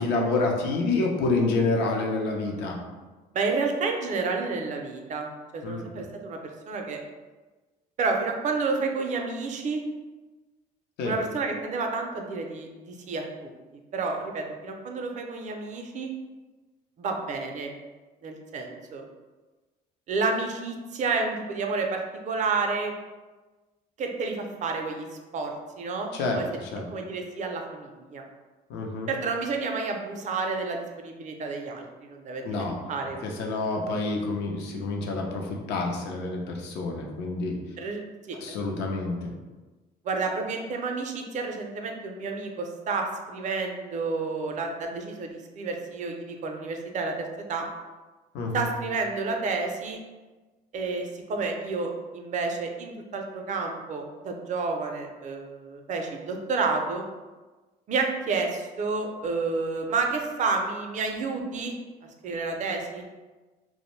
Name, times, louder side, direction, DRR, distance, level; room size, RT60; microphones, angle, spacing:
voice 1, 0.0-2.8 5.6-5.9 11.0-11.2 26.1-26.9 28.7-29.1 32.4-32.8 33.2-37.6 38.4-39.3 48.3-48.6, left 3 dB, 85° left, 1 dB, 0.5 m, -28 dB
voice 2, 3.3-5.3 5.5-6.4 6.7-7.0 8.0-9.8 11.0-13.5 13.9-16.1 17.0-17.7 18.2-19.0 20.1-22.9 24.0-25.1 25.3-26.5 26.9-28.2 29.1-33.7 37.8-38.0 38.3-38.6 40.0-47.1 47.5-47.7 48.5-50.0 50.7-57.0 57.9-61.7 62.2-63.0, right 4 dB, 45° right, 3 dB, 0.4 m, -30 dB
2.5 x 2.0 x 3.0 m, 1.2 s
cardioid pair, 110°, 17 cm